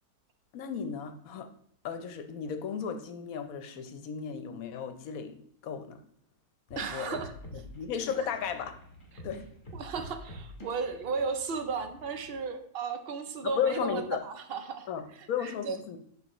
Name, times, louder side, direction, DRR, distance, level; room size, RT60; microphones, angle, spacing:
voice 1, 0.5-1.5 1.8-5.4 5.6-6.0 6.7-7.2 7.5-8.7 9.2-9.5 13.4-14.2 14.9-16.0, left 7 dB, 65° left, 8 dB, 1.1 m, -34 dB
sound 1, 6.7-12.4, left 1 dB, 35° left, 1.3 m, -48 dB
voice 2, 6.8-7.3 9.7-14.9 15.2-15.8, right 5 dB, 65° right, 8 dB, 0.6 m, -35 dB
10.5 x 3.8 x 3.0 m, 0.64 s
omnidirectional pair, 1.7 m